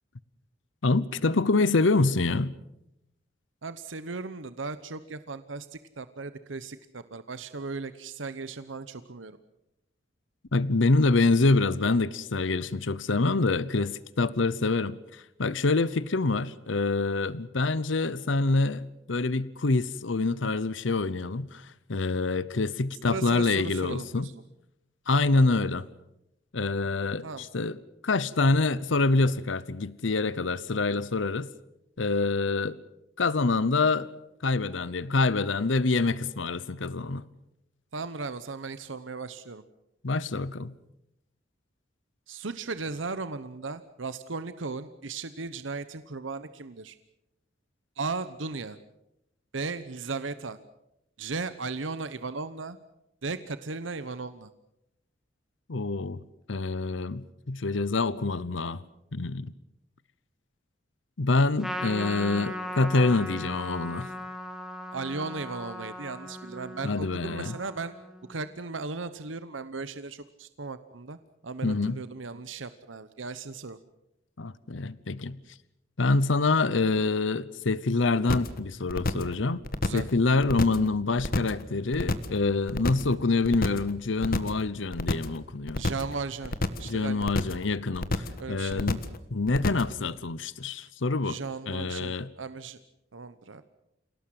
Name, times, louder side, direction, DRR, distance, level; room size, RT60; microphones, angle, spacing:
voice 1, 0.8-2.5 10.5-24.3 25.1-25.9 26.5-27.8 28.0-31.5 32.0-32.8 33.2-34.1 34.4-37.3 40.0-40.7 55.7-56.2 56.5-58.8 59.1-59.5 61.2-64.1 66.8-67.6 71.6-72.0 74.4-75.4 76.0-79.6 79.9-85.8 86.8-89.0 89.3-91.4 91.7-92.3, left 3 dB, 75° left, 19 dB, 0.8 m, -26 dB
voice 2, 3.6-9.4 23.1-24.3 25.1-25.5 27.2-27.5 37.9-39.6 42.3-47.0 48.0-48.8 49.5-50.6 51.2-52.8 53.2-54.5 64.9-67.9 68.3-71.2 71.4-73.8 79.8-80.0 85.8-87.3 88.4-88.8 91.2-92.8 93.1-93.7, right 4 dB, 85° right, 13 dB, 1.0 m, -36 dB
Trumpet, 61.6-68.3, left 1 dB, 5° right, 2.6 m, -38 dB
sound 1, 78.3-78.6 78.9-79.3 79.6-80.1 80.4-80.9 81.2-81.6 81.9-82.4 82.7-83.1 83.4-83.9 84.2-84.6 84.9-85.4 85.7-86.1 86.4-86.9 87.2-87.6 87.9-88.4 88.7-89.2 89.5-89.9, left 2 dB, 50° left, 1.5 m, -29 dB
28.0 x 18.0 x 7.7 m, 0.85 s
head